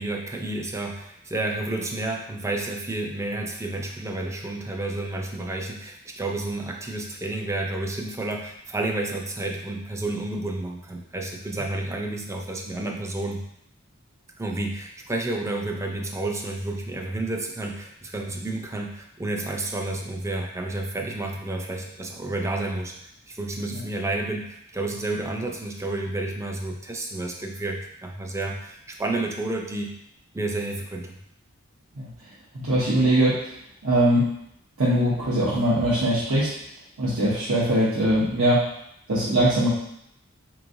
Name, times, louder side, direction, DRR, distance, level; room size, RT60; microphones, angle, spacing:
voice 1, 0.0-13.4 14.4-22.9 23.3-29.9 30.3-31.2, right 2 dB, 15° right, 1 dB, 0.4 m, -30 dB
voice 2, 32.5-33.4 33.8-34.3 34.8-36.5 37.0-38.6 39.1-39.7, right 1 dB, 80° right, -10 dB, 0.9 m, -21 dB
4.5 x 3.0 x 2.6 m, 0.75 s
head